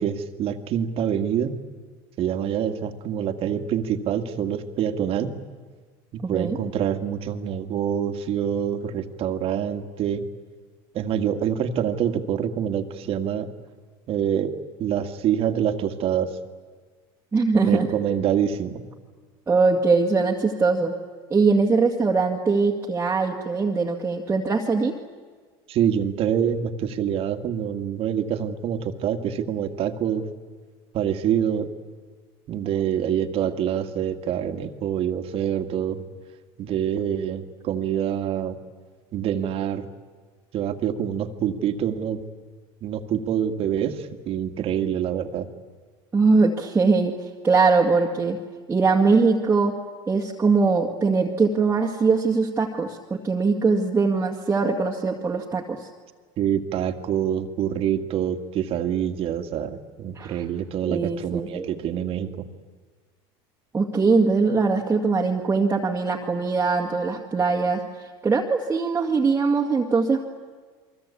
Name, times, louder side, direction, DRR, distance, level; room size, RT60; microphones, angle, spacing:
voice 1, 0.0-1.6 2.2-5.4 6.1-10.2 10.9-13.5 14.1-14.5 14.8-16.3 17.6-18.8 25.7-30.3 30.9-31.7 32.5-36.0 36.6-38.6 39.1-39.9 40.5-42.2 42.8-45.5 56.4-62.5, right 9 dB, 50° right, 7 dB, 2.0 m, -26 dB
voice 2, 6.2-6.6 17.3-17.9 19.5-20.9 21.3-24.9 46.1-47.1 47.4-48.4 48.7-49.7 50.1-55.9 60.2-60.4 60.8-61.7 63.7-70.2, right 4 dB, 20° right, -1 dB, 2.1 m, -21 dB
29.5 x 23.0 x 8.5 m, 1.5 s
supercardioid pair, 110°, 13 cm